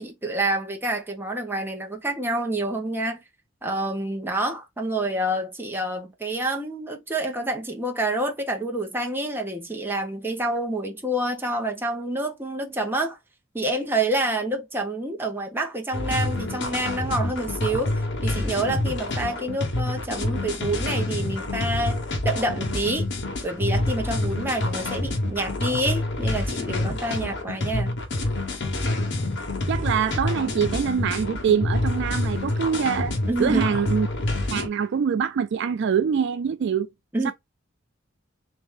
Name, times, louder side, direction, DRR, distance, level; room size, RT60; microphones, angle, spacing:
voice 1, 0.0-3.2 3.6-13.2 13.5-22.0 22.2-23.1 23.4-28.0 33.3-33.7 37.1-37.3, right 1 dB, 10° right, 1.1 m, -28 dB
sound 1, 15.9-34.7, left 2 dB, 65° left, 1.2 m, -27 dB
voice 2, 29.7-34.1 34.5-36.9 37.2-37.3, right 7 dB, 60° right, 0.3 m, -24 dB
3.5 x 2.9 x 3.7 m
head